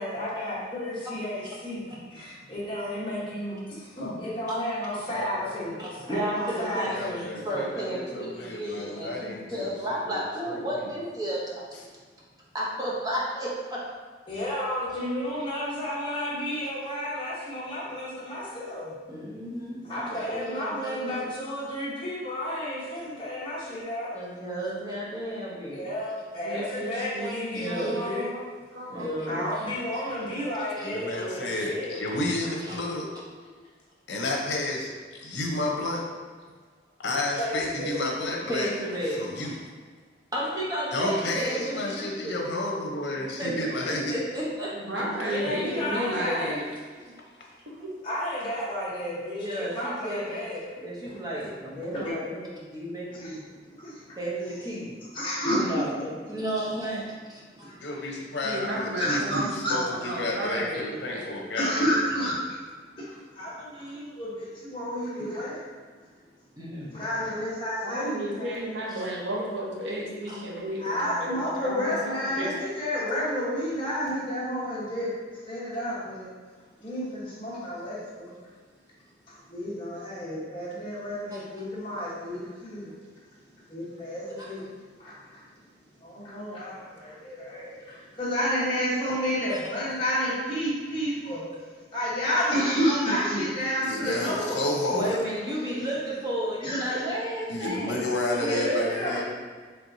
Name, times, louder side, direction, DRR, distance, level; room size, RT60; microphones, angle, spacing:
voice 1, 0.0-1.8 2.1-7.2 8.4-8.8 14.3-18.9 19.9-24.1 25.6-28.3 29.3-32.0 37.4-38.0 45.2-46.6 47.4-47.5 48.0-50.7 51.1-51.5 51.9-52.2 53.1-54.2 55.1-55.7 57.5-57.8 59.0-59.8 61.6-62.6 63.0-65.6 66.9-68.8 70.8-76.3 76.8-78.3 79.3-82.9 83.7-84.6 85.0-85.4 86.0-87.7 88.2-91.4 91.9-94.8 96.6-97.1 98.4-99.2, equal, 30° left, -8 dB, 1.1 m, -31 dB
voice 2, 5.1-5.7 6.9-10.9 30.8-33.1 34.1-34.9 35.2-36.0 37.0-38.7 39.1-39.6 40.9-44.1 45.0-45.2 45.4-45.5 57.8-61.9 62.2-62.3 93.8-95.2 97.5-99.2, left 2 dB, 75° left, -1 dB, 0.7 m, -31 dB
voice 3, 5.8-11.8 12.5-13.8 19.1-21.3 24.1-25.9 26.7-26.8 27.5-28.1 28.9-29.7 30.8-31.2 32.7-32.8 38.5-39.5 40.3-42.4 43.1-43.5 44.1-44.8 49.4-50.3 50.8-52.5 52.7-53.4 54.2-54.9 55.4-57.7 66.6-66.9 68.9-69.0 70.3-70.4 81.3-81.4 89.5-89.6 94.9-99.2, right 1 dB, 20° right, -5 dB, 0.8 m, -33 dB
voice 4, 26.4-28.4 28.7-29.5 44.7-46.7 46.9-47.1 47.7-47.9 58.4-61.3 67.8-72.5, equal, 80° right, -3 dB, 0.9 m, -33 dB
4.4 x 3.4 x 2.7 m, 1.5 s
head